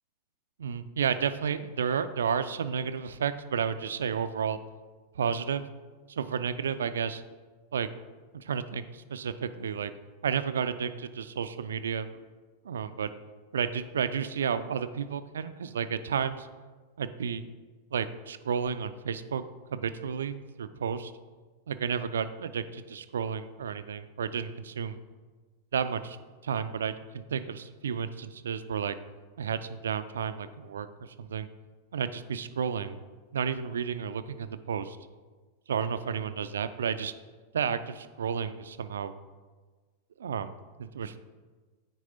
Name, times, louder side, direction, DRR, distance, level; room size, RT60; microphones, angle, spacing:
voice 1, 0.6-4.6 5.2-5.6 6.1-7.2 7.7-7.9 8.3-9.9 10.2-12.2 12.6-13.1 13.5-16.5 17.0-17.4 17.9-19.4 19.7-21.1 21.7-25.0 25.7-26.2 26.4-29.0 29.4-31.5 31.9-33.0 33.3-35.0 35.7-37.1 37.5-39.1 40.2-40.5 40.8-41.2, right 7 dB, 65° right, 12 dB, 0.3 m, -32 dB
9.2 x 4.7 x 3.9 m, 1.4 s
figure-of-eight pair, 90°, 0 cm